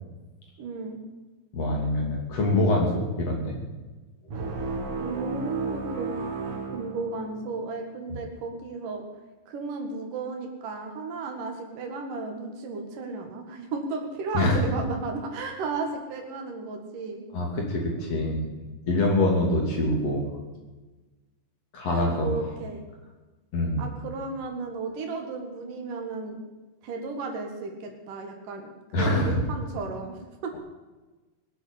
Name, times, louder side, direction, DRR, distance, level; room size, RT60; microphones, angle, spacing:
voice 1, 0.6-1.0 5.0-6.2 6.7-9.1 9.5-17.2 21.9-22.8 23.8-26.4 26.8-30.5, right 3 dB, 75° right, 3 dB, 3.5 m, -34 dB
voice 2, 1.5-3.6 14.3-14.6 17.3-18.5 18.9-20.2 21.7-22.5 23.5-23.9 28.9-29.4, left 1 dB, 50° left, 0 dB, 3.9 m, -25 dB
sound 1, 4.3-7.6, right 4 dB, 50° right, 2.6 m, -33 dB
20.5 x 8.5 x 8.3 m, 1.2 s
omnidirectional pair, 3.8 m